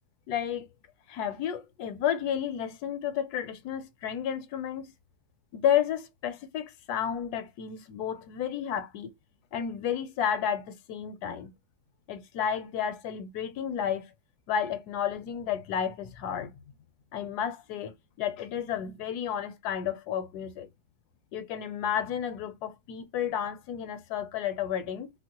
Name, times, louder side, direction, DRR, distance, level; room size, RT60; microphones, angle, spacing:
voice 1, 0.3-0.7 1.1-4.9 5.5-9.1 9.5-11.5 12.1-14.1 14.5-16.5 17.1-20.7 21.3-25.1, left 9 dB, 80° left, 1.1 m, -31 dB
3.8 x 2.0 x 2.8 m
omnidirectional pair, 1.7 m